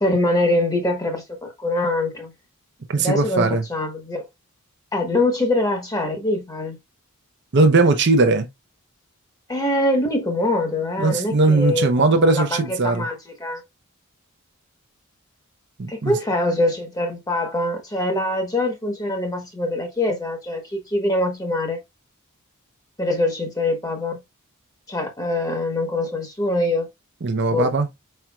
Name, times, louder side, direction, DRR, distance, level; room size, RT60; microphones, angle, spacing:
voice 1, 0.0-2.3 3.0-4.3 4.9-6.8 9.5-13.6 15.9-21.8 23.0-24.2 24.9-26.9 27.5-27.7, left 1 dB, 15° left, 1.0 m, -23 dB
voice 2, 2.9-3.6 7.5-8.5 11.0-13.1 15.8-16.1 27.2-27.9, right 3 dB, 50° right, 0.6 m, -18 dB
4.7 x 4.4 x 2.3 m
head